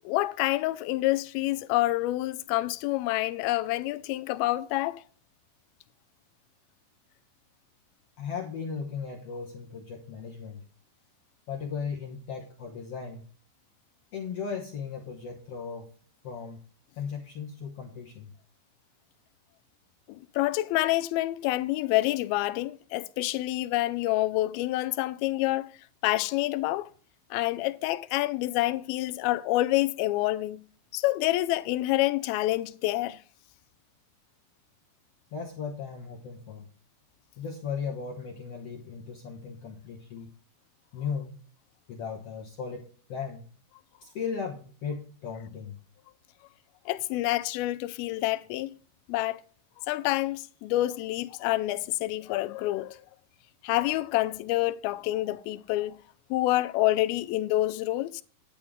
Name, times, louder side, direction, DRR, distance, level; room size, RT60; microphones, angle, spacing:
voice 1, 0.1-5.0 20.1-25.7 26.0-26.9 27.3-30.6 30.9-33.2 46.9-48.7 49.1-49.4 49.8-53.0 53.6-56.0 56.3-58.2, left 17 dB, 85° left, 2.4 m, -27 dB
voice 2, 8.2-10.6 11.5-13.2 14.1-15.9 16.2-16.6 17.0-18.3 35.3-36.7 37.4-40.3 40.9-41.3 41.9-43.4 44.0-45.8, left 6 dB, 65° left, 1.5 m, -36 dB
10.0 x 9.5 x 3.6 m
omnidirectional pair, 4.3 m